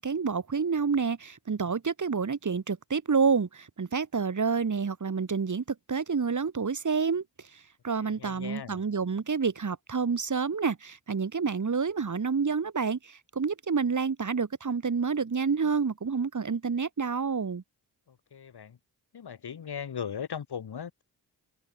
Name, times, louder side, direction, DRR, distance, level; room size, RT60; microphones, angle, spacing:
voice 1, 0.0-7.2 7.5-17.6, right 5 dB, 50° right, 2.9 m, -28 dB
voice 2, 8.0-8.8 18.3-18.8 19.1-21.0, left 7 dB, 75° left, 4.6 m, -38 dB
cardioid pair, 60°, 39 cm